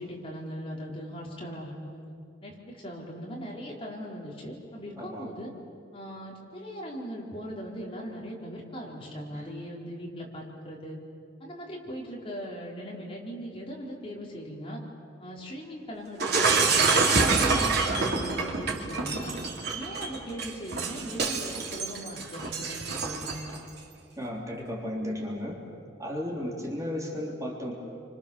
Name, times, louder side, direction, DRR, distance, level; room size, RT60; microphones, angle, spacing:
voice 1, 0.0-2.0 2.4-5.5 5.9-11.0 11.4-14.8 15.2-17.7 18.0-19.3 19.7-23.4, equal, 30° left, -3 dB, 4.4 m, -39 dB
voice 2, 5.0-5.3 9.3-9.4 24.2-25.6 26.0-27.7, left 1 dB, 20° right, -2 dB, 3.5 m, -34 dB
Shatter, 16.2-23.6, right 4 dB, 60° right, 3.4 m, -26 dB
30.0 x 25.5 x 7.1 m, 2.5 s
head